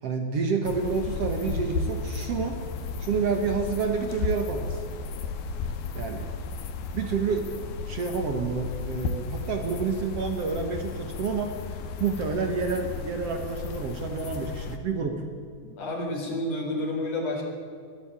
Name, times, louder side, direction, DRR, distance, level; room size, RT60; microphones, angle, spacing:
voice 1, 0.0-2.6 3.0-4.8 5.9-6.3 6.9-7.5 7.9-11.6 12.0-15.2, right 5 dB, 70° right, 5 dB, 1.4 m, -29 dB
sound 1, 0.6-14.8, left 4 dB, 70° left, 3.0 m, -34 dB
voice 2, 15.8-17.4, left 1 dB, 45° left, 0 dB, 5.6 m, -30 dB
21.5 x 13.5 x 8.9 m, 2.3 s
omnidirectional pair, 5.0 m